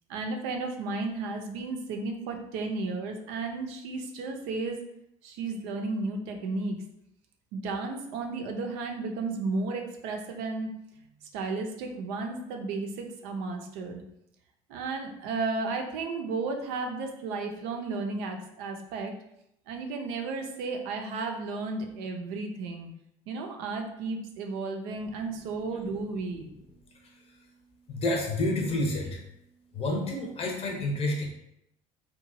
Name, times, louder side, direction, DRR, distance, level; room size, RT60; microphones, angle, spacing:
voice 1, 0.1-4.9 5.2-6.8 7.5-10.7 11.2-14.0 14.7-19.1 19.7-22.9 23.3-26.5, right 3 dB, 75° right, 3 dB, 0.5 m, -33 dB
voice 2, 27.0-27.4 27.9-29.2 29.7-31.3, left 1 dB, 40° left, 0 dB, 0.7 m, -29 dB
2.9 x 2.3 x 2.6 m, 0.80 s
hypercardioid pair, 75°, 16 cm